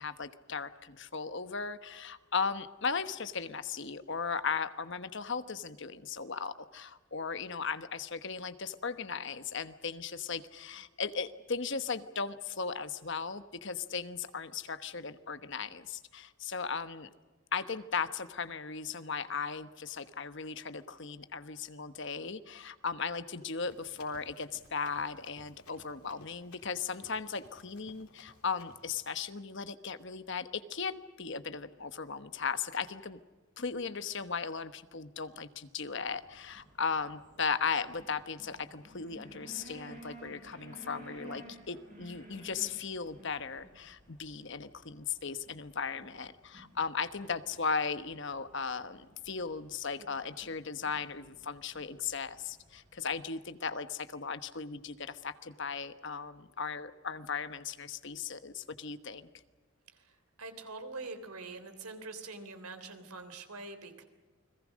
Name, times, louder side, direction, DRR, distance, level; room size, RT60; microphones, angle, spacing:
voice 1, 0.0-17.1 17.5-33.2 33.6-59.3, left 5 dB, 55° left, 12 dB, 1.2 m, -37 dB
Run, 23.6-28.9, left 3 dB, 80° left, 4.0 m, -58 dB
sound 1, 36.1-53.2, right 1 dB, 35° right, 6.3 m, -55 dB
voice 2, 59.9-64.0, right 3 dB, 85° right, 9 dB, 3.4 m, -44 dB
29.5 x 21.5 x 6.4 m, 1.3 s
head